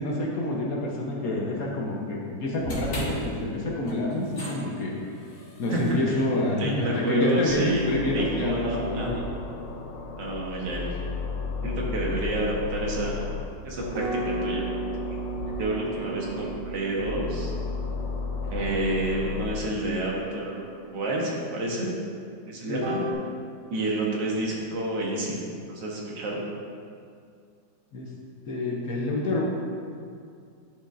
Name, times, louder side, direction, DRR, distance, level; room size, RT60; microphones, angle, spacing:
voice 1, 0.0-4.9 5.6-9.2 22.7-22.8 27.9-28.1 28.5-29.5, left 1 dB, 55° left, -3 dB, 1.2 m, -28 dB
sound 1, 2.6-8.9, equal, 40° left, 1.9 m, -39 dB
voice 2, 5.7-6.0 6.6-9.2 10.2-11.1 11.6-13.3 13.6-14.6 15.0-15.2 15.5-17.5 18.5-21.9 22.5-23.1 23.7-25.4 25.7-26.4, right 1 dB, 75° right, -3 dB, 1.8 m, -29 dB
sound 2, 7.5-10.3 10.6-13.4 13.8-16.5 17.0-19.6, left 4 dB, 80° left, 1.3 m, -34 dB
sound 3, 13.9-21.1 22.8-23.1, right 2 dB, 50° right, 1.0 m, -37 dB
11.5 x 5.0 x 2.5 m, 2.3 s
omnidirectional pair, 2.0 m